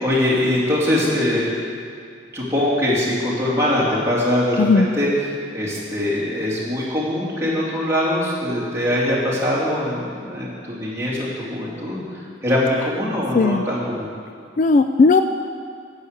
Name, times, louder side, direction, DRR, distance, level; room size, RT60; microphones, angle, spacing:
voice 1, 0.0-1.5 2.3-14.1, left 1 dB, 15° right, -7 dB, 2.5 m, -22 dB
voice 2, 14.6-15.2, left 4 dB, 40° left, 8 dB, 0.3 m, -15 dB
10.0 x 8.1 x 6.5 m, 2.2 s
head